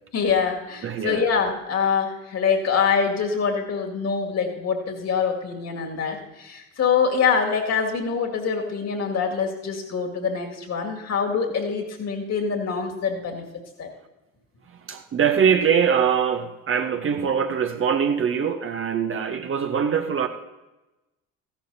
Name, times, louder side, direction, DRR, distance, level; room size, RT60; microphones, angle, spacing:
voice 1, 0.1-13.4 13.8-13.9, left 6 dB, 40° left, 2 dB, 2.2 m, -24 dB
voice 2, 0.8-1.3 14.7-20.3, right 7 dB, 30° right, 6 dB, 0.9 m, -23 dB
15.5 x 11.5 x 2.8 m, 1.0 s
figure-of-eight pair, 55°, 39 cm